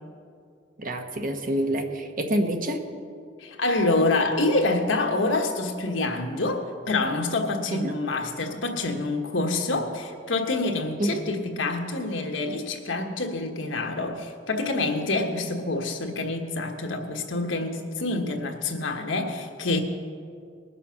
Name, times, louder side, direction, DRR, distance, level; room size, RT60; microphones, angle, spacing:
voice 1, 0.8-2.8 7.7-7.9 11.0-11.2, right 1 dB, 45° right, 5 dB, 1.1 m, -27 dB
voice 2, 3.4-19.8, left 2 dB, 80° left, 3 dB, 1.3 m, -27 dB
20.0 x 6.9 x 5.8 m, 2.3 s
head